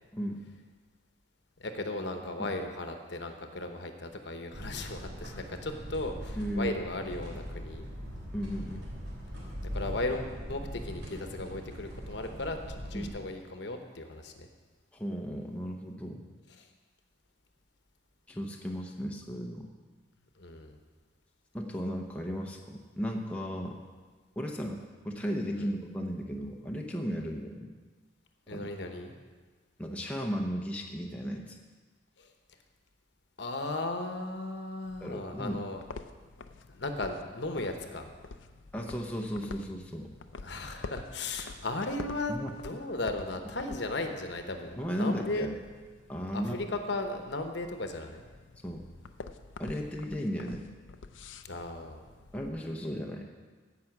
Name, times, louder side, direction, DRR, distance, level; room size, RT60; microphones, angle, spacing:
voice 1, 0.1-0.5 2.4-2.5 6.4-7.1 8.3-8.9 12.9-13.2 14.9-16.2 18.3-19.7 21.5-23.8 24.4-27.7 28.5-28.7 29.8-31.6 35.0-35.6 38.7-40.1 42.3-42.5 44.8-45.6 46.1-46.7 48.6-48.9 49.6-50.7 52.3-53.3, equal, 5° left, 0 dB, 0.7 m, -35 dB
voice 2, 1.6-7.9 9.7-12.6 12.9-14.5 16.6-16.7 20.4-20.8 25.6-25.7 27.2-27.3 28.5-29.2 32.2-32.3 33.4-35.8 36.7-38.1 40.4-42.4 42.6-45.5 46.3-48.2 51.4-52.0, left 2 dB, 65° left, 5 dB, 1.0 m, -36 dB
sound 1, 4.5-13.1, equal, 70° right, 3.7 m, -41 dB
sound 2, 34.8-52.5, left 3 dB, 80° left, 0.5 m, -48 dB
15.5 x 5.7 x 5.9 m, 1.4 s
head